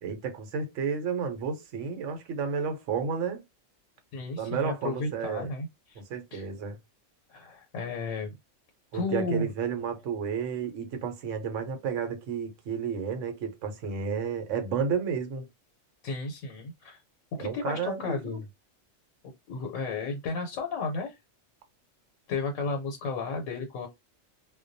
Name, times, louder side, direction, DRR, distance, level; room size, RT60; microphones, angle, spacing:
voice 1, 0.0-3.4 4.4-5.5 6.0-6.8 8.9-15.5 17.4-18.4, right 6 dB, 75° right, 1.0 m, -32 dB
voice 2, 4.1-6.0 6.3-6.5 7.3-8.4 8.9-9.5 16.0-17.0 17.4-18.5 19.2-21.2 22.3-23.9, left 4 dB, 85° left, 1.0 m, -33 dB
2.2 x 2.2 x 2.5 m
omnidirectional pair, 1.3 m